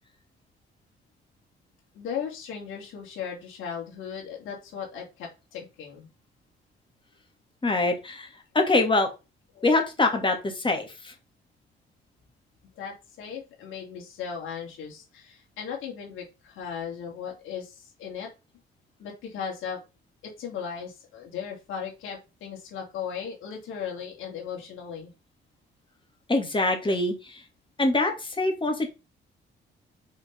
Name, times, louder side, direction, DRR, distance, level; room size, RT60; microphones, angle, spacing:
voice 1, 1.9-6.1 9.5-9.6 12.7-18.3 19.0-19.8 20.2-25.1, left 7 dB, 85° left, -2 dB, 3.1 m, -37 dB
voice 2, 7.6-8.3 8.5-9.1 9.6-11.1 26.3-27.4 27.8-28.9, left 2 dB, 25° left, 3 dB, 2.8 m, -24 dB
5.8 x 5.4 x 5.5 m, 0.28 s
cardioid pair, 90°, 20 cm